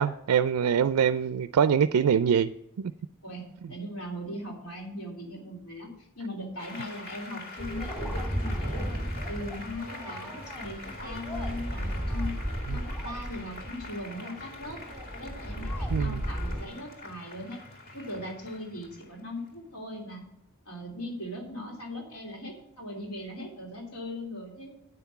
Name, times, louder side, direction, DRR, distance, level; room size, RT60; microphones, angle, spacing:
voice 1, 0.0-2.5 2.8-2.9 12.7-12.8 15.9-16.2, right 7 dB, 85° right, 12 dB, 0.4 m, -24 dB
voice 2, 3.2-8.9 9.3-12.4 12.7-14.8 15.2-17.6 17.9-20.2 20.6-24.7, left 1 dB, 85° left, -1 dB, 3.2 m, -39 dB
Applause, 6.6-19.6, left 2 dB, 45° left, 2.0 m, -44 dB
sound 1, 7.6-16.6, equal, 10° left, 1.6 m, -34 dB
9.4 x 5.8 x 8.2 m, 0.77 s
head